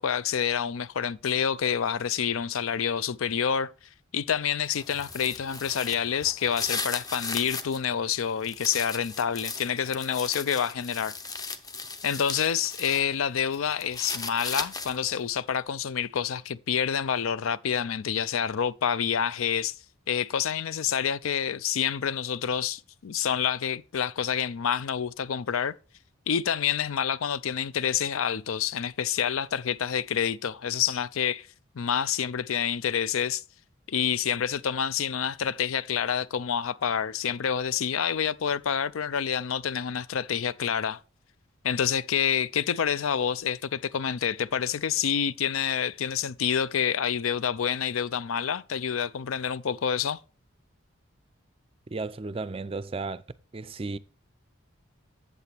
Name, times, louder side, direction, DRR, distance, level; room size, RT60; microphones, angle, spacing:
voice 1, 0.0-3.7 4.1-11.2 12.0-19.8 20.1-25.7 26.3-31.5 31.7-33.4 33.9-41.0 41.6-50.2, left 8 dB, 90° left, 0.5 m, -28 dB
sound 1, 4.6-7.8 8.2-13.0 13.4-15.1, left 4 dB, 20° left, 0.6 m, -37 dB
voice 2, 51.9-53.2 53.5-54.0, right 3 dB, 25° right, 0.4 m, -34 dB
8.3 x 7.9 x 3.3 m
head